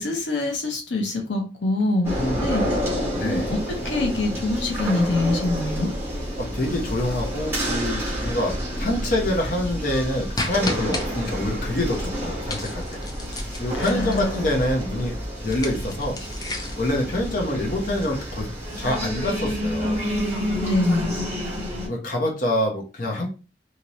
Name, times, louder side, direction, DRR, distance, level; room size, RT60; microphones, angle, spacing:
voice 1, 0.0-2.8 3.2-5.9 13.7-14.4 20.6-21.2, left 2 dB, 75° left, 3 dB, 0.8 m, -25 dB
sound 1, 2.0-21.9, equal, 10° right, 1.2 m, -29 dB
voice 2, 2.2-2.5 3.1-3.5 6.4-13.1 13.6-15.1 15.4-16.2 16.8-18.5 18.8-20.0 21.9-23.3, left 1 dB, 45° left, -1 dB, 0.8 m, -26 dB
sound 2, 10.4-11.1 12.5-14.4 15.4-16.9, left 2 dB, 20° left, 0.5 m, -32 dB
2.9 x 2.8 x 2.9 m, 0.32 s
head